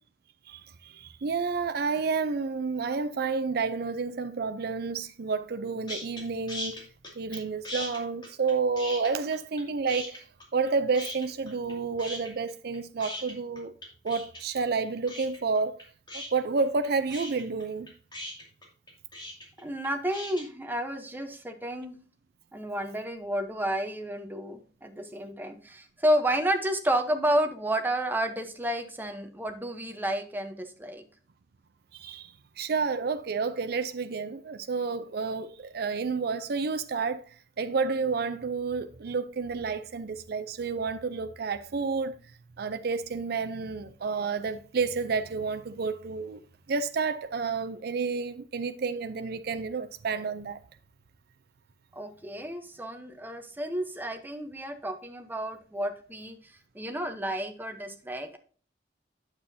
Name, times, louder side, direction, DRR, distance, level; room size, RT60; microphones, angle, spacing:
voice 1, 0.5-6.9 7.2-10.2 10.5-13.7 14.0-15.7 16.1-17.9 31.9-32.3 32.6-37.2 37.6-42.2 42.6-46.4 46.7-50.6, right 4 dB, 60° right, 0.5 m, -30 dB
sound 1, 5.9-6.2 6.5-7.4 7.6-9.6 9.9-10.7 10.9-11.7 12.0-20.4, left 1 dB, 25° left, 2.5 m, -39 dB
voice 2, 19.6-22.0 22.5-31.0 51.9-58.4, right 1 dB, 10° right, 0.9 m, -31 dB
8.8 x 7.1 x 2.7 m
head